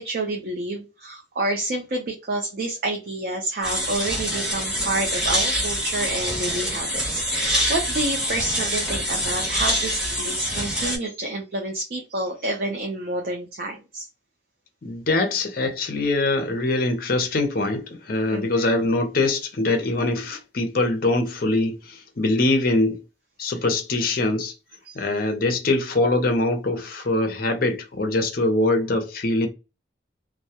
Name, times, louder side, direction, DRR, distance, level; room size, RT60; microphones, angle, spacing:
voice 1, 0.0-14.1 18.3-18.8 24.9-25.0, right 2 dB, 50° right, 0.5 m, -29 dB
sound 1, 3.6-11.0, equal, 5° right, 0.7 m, -25 dB
voice 2, 14.8-23.0 23.4-24.5 24.9-29.5, left 2 dB, 50° left, 0.6 m, -23 dB
2.2 x 2.0 x 2.7 m
head